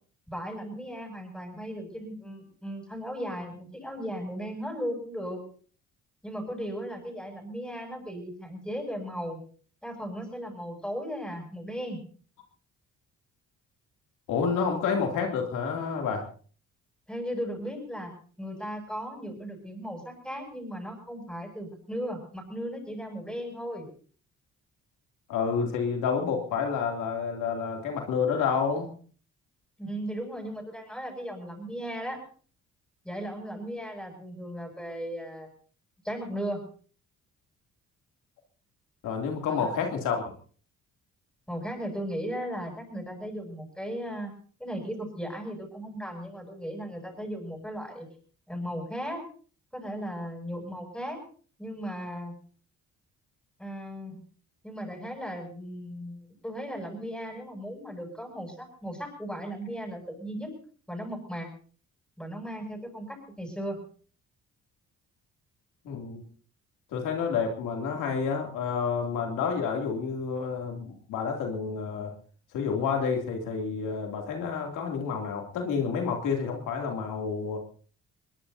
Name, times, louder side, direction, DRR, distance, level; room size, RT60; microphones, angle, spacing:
voice 1, 0.3-5.4 6.2-9.4 9.8-12.0 17.1-18.1 18.4-23.9 29.8-32.2 33.0-35.5 36.0-36.6 39.5-39.7 41.5-44.3 44.6-48.1 48.5-49.2 49.7-51.2 51.6-52.3 53.6-54.2 54.6-60.5 60.9-61.5 62.2-63.8, equal, 5° left, 3 dB, 7.7 m, -36 dB
voice 2, 14.3-16.2 25.3-28.9 39.0-40.3 65.8-66.2 66.9-72.1 72.5-77.6, left 6 dB, 90° left, 2 dB, 3.0 m, -29 dB
21.5 x 21.0 x 2.8 m, 0.43 s
cardioid pair, 90°, 30 cm